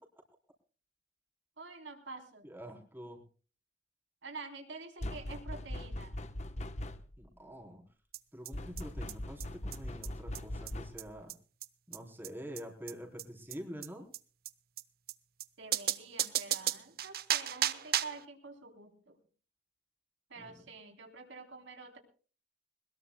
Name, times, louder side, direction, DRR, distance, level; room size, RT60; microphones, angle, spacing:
voice 1, 1.6-2.5 4.2-6.2 15.6-19.2 20.3-22.0, right 4 dB, 80° right, 4 dB, 3.6 m, -47 dB
voice 2, 2.4-3.2 7.2-7.8 8.3-11.3 11.9-14.1 20.4-20.7, equal, 10° right, 1 dB, 3.6 m, -46 dB
sound 1, 5.0-7.3 8.5-11.2, left 1 dB, 35° left, 1.0 m, -40 dB
sound 2, 8.1-8.2 8.4-8.5 8.8-8.9 9.1-9.2 9.4-9.5 9.7-9.8 10.0-10.1 10.3-10.4 10.7-10.8 11.0-11.1 11.3-11.4 11.6-11.7 11.9-12.0 12.2-12.3 12.6-12.7 12.9-13.0 13.2-13.3 13.5-13.6 13.8-13.9 14.1-14.2 14.4-14.5 14.8-14.9 15.1-15.2 15.4-15.5 15.7-18.2, right 11 dB, 50° right, 0.9 m, -34 dB
22.0 x 20.5 x 2.2 m, 0.39 s
head